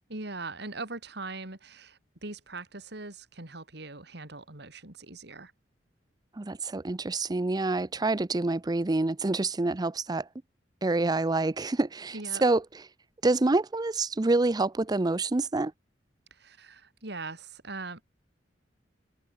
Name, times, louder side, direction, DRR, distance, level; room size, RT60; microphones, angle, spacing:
voice 1, 0.1-5.5 12.1-12.4 16.3-18.0, right 3 dB, 65° right, 3.2 m, -41 dB
voice 2, 6.3-10.3 10.8-12.8 13.2-15.7, right 2 dB, 20° right, 0.5 m, -27 dB
head